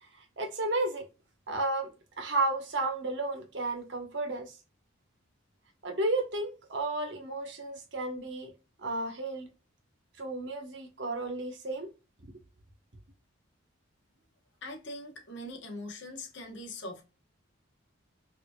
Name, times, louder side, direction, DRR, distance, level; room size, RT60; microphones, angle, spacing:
voice 1, 0.0-1.1 1.5-4.6 5.8-8.5 8.8-9.5 10.2-11.9 12.2-12.3, right 2 dB, 55° right, 1.1 m, -33 dB
voice 2, 14.6-17.0, left 1 dB, 60° left, 1.0 m, -42 dB
4.7 x 2.8 x 2.2 m
head